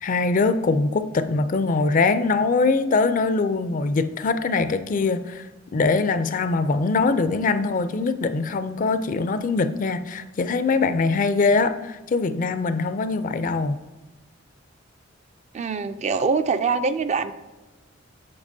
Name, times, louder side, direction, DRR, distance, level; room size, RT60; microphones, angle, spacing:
voice 1, 0.0-5.5 5.7-13.8, left 3 dB, 40° left, 11 dB, 0.4 m, -22 dB
voice 2, 15.5-17.3, right 4 dB, 35° right, 10 dB, 0.3 m, -23 dB
8.6 x 6.8 x 2.7 m, 1.2 s
head